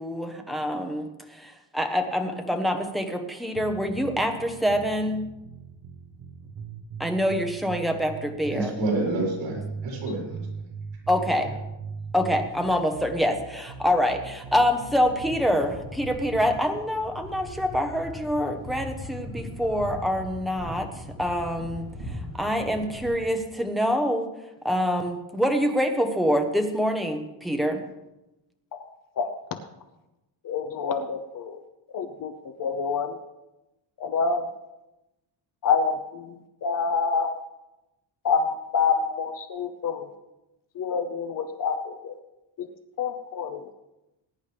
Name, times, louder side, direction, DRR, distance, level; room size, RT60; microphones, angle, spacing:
voice 1, 0.0-5.2 7.0-8.7 11.1-11.5 12.1-20.9 21.2-24.3 24.6-27.8, equal, ahead, 4 dB, 1.0 m, -26 dB
sound 1, 3.5-15.5, right 5 dB, 60° right, 1.2 m, -39 dB
voice 2, 8.5-10.4, right 2 dB, 75° right, -3 dB, 4.7 m, -28 dB
sound 2, 15.0-23.2, left 1 dB, 40° right, 4.9 m, -39 dB
voice 3, 30.4-31.6 31.9-33.2 34.0-34.4 35.6-37.4 38.2-40.1 40.7-42.2 42.6-42.7 43.0-43.7, left 5 dB, 45° left, 8 dB, 0.8 m, -27 dB
20.5 x 10.5 x 3.4 m, 0.97 s
cardioid pair, 165°, 46 cm